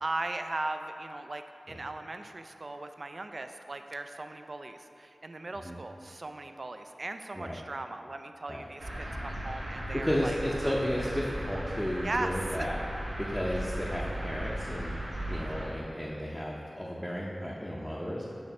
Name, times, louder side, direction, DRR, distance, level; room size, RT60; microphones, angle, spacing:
voice 1, 0.0-10.4 10.6-10.7 12.0-12.3 12.6-12.7 13.5-13.6 15.3-15.8, right 2 dB, 50° right, 7 dB, 0.3 m, -38 dB
sound 1, 8.8-15.7, equal, 85° right, 1.1 m, -37 dB
voice 2, 9.9-12.8 13.2-18.3, equal, 10° left, -5 dB, 0.6 m, -33 dB
6.9 x 3.2 x 5.8 m, 2.7 s
wide cardioid pair, 80°, 0 cm